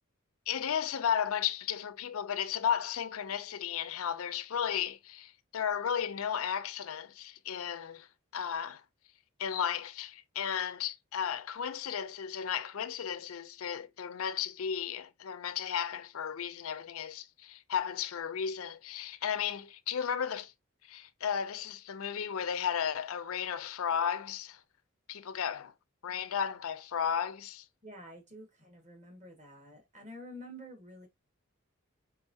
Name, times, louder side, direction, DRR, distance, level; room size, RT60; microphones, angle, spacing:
voice 1, 0.5-8.1 8.3-8.8 9.4-20.5 20.8-24.6 25.1-25.7 26.0-27.7, left 8 dB, 80° left, 0.5 m, -34 dB
voice 2, 27.8-31.1, equal, 35° right, 1.6 m, -49 dB
4.6 x 3.6 x 2.7 m
head